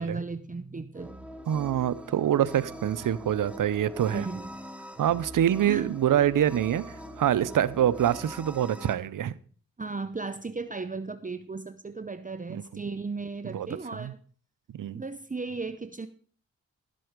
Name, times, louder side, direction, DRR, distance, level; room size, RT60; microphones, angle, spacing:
voice 1, 0.0-1.3 4.1-4.5 5.7-5.9 9.8-14.2 14.9-16.1, right 4 dB, 25° right, 11 dB, 0.8 m, -35 dB
sound 1, 0.9-8.9, equal, 5° right, 1.7 m, -43 dB
voice 2, 1.5-4.3 5.0-6.8 7.2-9.3 12.5-12.6 13.4-13.7 14.0-14.1 14.7-15.0, right 10 dB, 85° right, 18 dB, 0.7 m, -25 dB
12.5 x 7.7 x 5.0 m, 0.43 s
cardioid pair, 45°, 31 cm